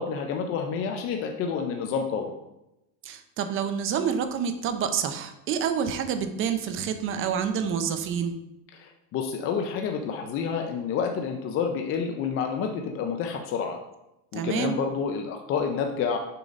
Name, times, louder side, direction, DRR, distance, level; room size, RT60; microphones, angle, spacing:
voice 1, 0.0-2.3 8.7-13.8 14.3-16.2, left 6 dB, 30° left, 4 dB, 0.4 m, -29 dB
voice 2, 3.0-8.4 14.3-14.8, right 7 dB, 30° right, 8 dB, 0.5 m, -28 dB
6.6 x 3.9 x 5.0 m, 0.91 s
cardioid pair, 155°, 46 cm